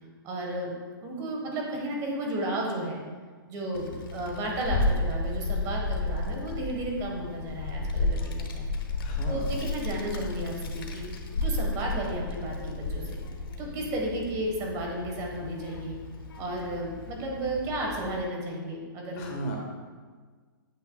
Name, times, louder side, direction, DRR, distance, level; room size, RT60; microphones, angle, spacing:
voice 1, 0.2-3.0 3.5-8.7 9.3-11.0 11.4-13.2 13.6-16.0 16.4-19.3, right 1 dB, 30° right, 0 dB, 1.3 m, -33 dB
Child speech kid speaking, 3.7-18.2, left 2 dB, 75° left, 1.0 m, -33 dB
voice 2, 9.0-9.5 19.1-19.6, right 1 dB, 35° left, 0 dB, 1.1 m, -35 dB
8.6 x 6.6 x 2.3 m, 1.5 s
hypercardioid pair, 140°, 12 cm